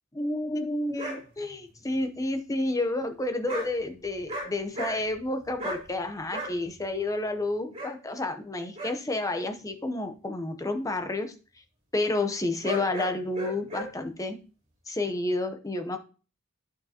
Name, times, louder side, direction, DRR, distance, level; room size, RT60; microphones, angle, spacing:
voice 1, 0.2-11.3 11.9-14.4 14.9-16.0, left 2 dB, 15° left, 7 dB, 0.7 m, -30 dB
sound 1, 0.9-1.2 3.4-3.7 4.1-4.5 4.7-5.2 5.6-5.8 6.3-6.5 7.7-7.9 8.7-8.9 12.6-13.9, right 1 dB, 25° right, 3.5 m, -34 dB
9.4 x 6.4 x 2.8 m, 0.35 s
head